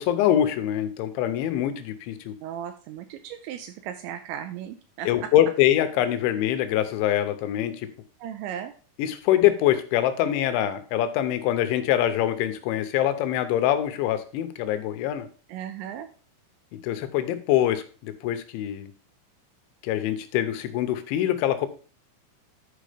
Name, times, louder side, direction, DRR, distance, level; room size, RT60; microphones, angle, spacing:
voice 1, 0.0-2.3 5.1-7.9 9.0-15.3 16.7-18.9 19.8-21.7, left 12 dB, 80° left, 9 dB, 3.0 m, -24 dB
voice 2, 2.4-5.3 8.2-8.7 15.5-16.1, right 10 dB, 85° right, 8 dB, 2.7 m, -36 dB
10.5 x 4.8 x 5.0 m, 0.38 s
omnidirectional pair, 5.7 m